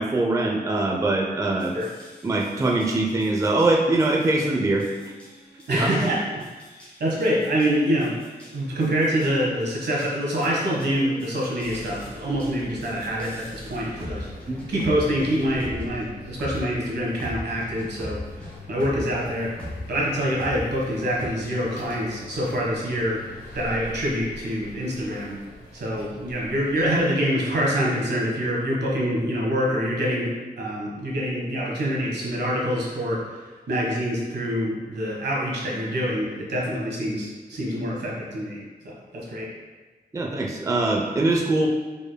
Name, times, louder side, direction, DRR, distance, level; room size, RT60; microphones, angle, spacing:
voice 1, 0.0-1.7 2.2-4.9 5.7-5.9 14.5-14.6 40.1-41.7, right 2 dB, 20° right, 0 dB, 0.4 m, -22 dB
sound 1, 1.6-19.2 19.6-21.3, equal, 5° left, 1.4 m, -42 dB
voice 2, 5.7-6.4 7.0-8.2 8.5-19.5 19.9-23.2 23.5-25.4 25.7-39.5, equal, 80° right, -4 dB, 1.3 m, -26 dB
sound 2, 11.6-26.9, left 2 dB, 60° left, 1.2 m, -43 dB
5.0 x 4.4 x 2.2 m, 1.3 s
wide cardioid pair, 145°, 17 cm